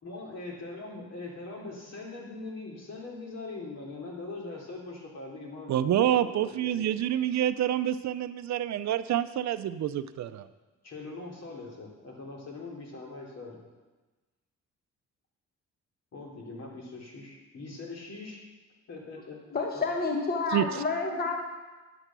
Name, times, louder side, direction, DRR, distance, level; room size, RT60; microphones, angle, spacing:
voice 1, 0.0-7.1 10.8-13.6 16.1-18.4 18.9-19.4, left 3 dB, 55° left, -2 dB, 3.2 m, -42 dB
voice 2, 5.7-10.5 20.5-20.6, right 11 dB, 65° right, 13 dB, 0.6 m, -27 dB
voice 3, 19.5-21.5, left 3 dB, 30° left, 2 dB, 1.2 m, -29 dB
10.0 x 8.2 x 6.1 m, 1.2 s
cardioid pair, 90°, 30 cm